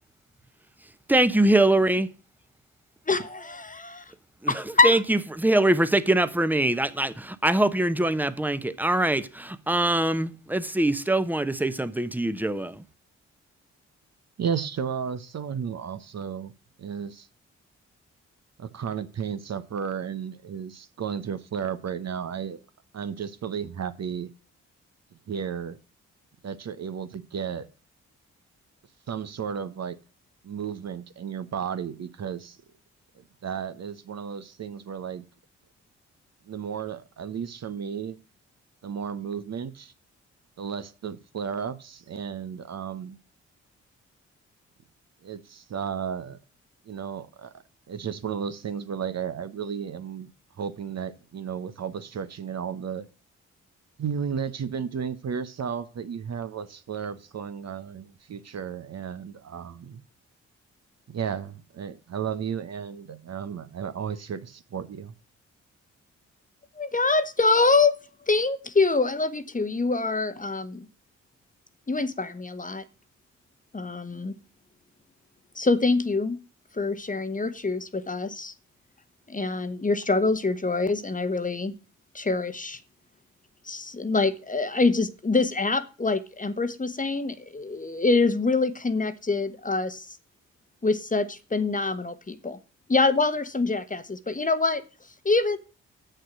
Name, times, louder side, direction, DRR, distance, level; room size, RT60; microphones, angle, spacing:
voice 1, 1.1-2.1 4.4-12.8, right 1 dB, 5° right, 1.0 m, -23 dB
voice 2, 3.1-4.0 4.5-5.0 66.8-68.0 68.3-70.9 71.9-72.8 73.7-74.4 75.5-76.4 76.7-78.5 79.3-81.7 82.1-82.8 83.7-90.1 90.8-92.6 92.9-94.8 95.2-95.6, left 3 dB, 25° left, 1.1 m, -25 dB
voice 3, 14.4-16.5 16.8-17.3 18.6-22.6 22.9-24.3 25.3-25.8 26.4-27.7 29.1-30.0 30.4-32.6 33.1-35.2 36.5-38.2 38.8-39.9 40.6-43.2 45.2-46.4 46.8-47.5 47.9-50.3 50.6-53.1 54.0-60.0 61.1-65.1, right 7 dB, 50° right, 1.0 m, -33 dB
7.8 x 6.7 x 6.1 m
hypercardioid pair, 40°, 33 cm